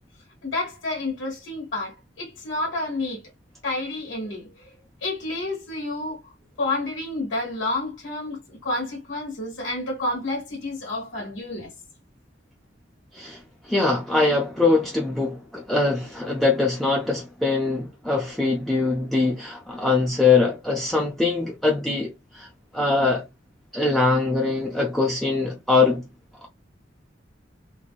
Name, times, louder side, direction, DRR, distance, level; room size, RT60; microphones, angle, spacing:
voice 1, 0.4-3.2 3.6-4.7 5.0-6.3 6.6-11.7, left 2 dB, 90° left, 1.5 m, -30 dB
voice 2, 13.1-23.2 23.7-26.0 26.4-26.5, left 3 dB, ahead, 0.4 m, -22 dB
3.1 x 2.6 x 2.3 m
head